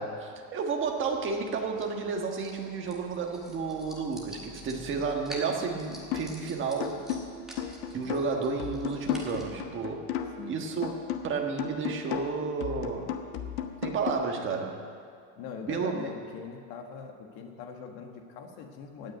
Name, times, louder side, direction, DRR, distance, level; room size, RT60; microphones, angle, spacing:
voice 1, 0.0-7.0 7.9-10.1 10.5-13.1 13.8-14.8 15.7-16.1, right 5 dB, 25° right, 1 dB, 1.4 m, -32 dB
sound 1, 0.8-9.5, equal, ahead, 1.6 m, -48 dB
sound 2, 6.1-6.4 6.8-10.5 10.8-14.1, left 9 dB, 70° left, 1.2 m, -35 dB
voice 2, 15.4-19.1, left 6 dB, 50° left, 3 dB, 1.6 m, -42 dB
17.0 x 6.4 x 9.2 m, 2.3 s
cardioid pair, 175°, 47 cm